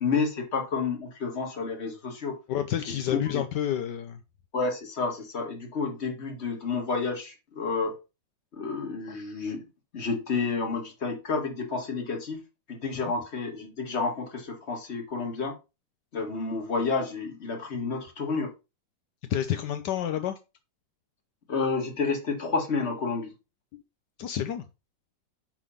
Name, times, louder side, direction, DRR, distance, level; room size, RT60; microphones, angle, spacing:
voice 1, 0.0-2.4 3.1-3.4 4.5-7.9 8.5-9.6 9.9-12.4 12.7-15.5 16.1-18.5 21.5-23.3, left 4 dB, 40° left, 2.0 m, -30 dB
voice 2, 2.5-4.2 12.9-13.1 19.3-20.4 23.7-23.8 24.2-24.6, left 10 dB, 75° left, 1.3 m, -29 dB
9.8 x 3.4 x 5.6 m
omnidirectional pair, 1.9 m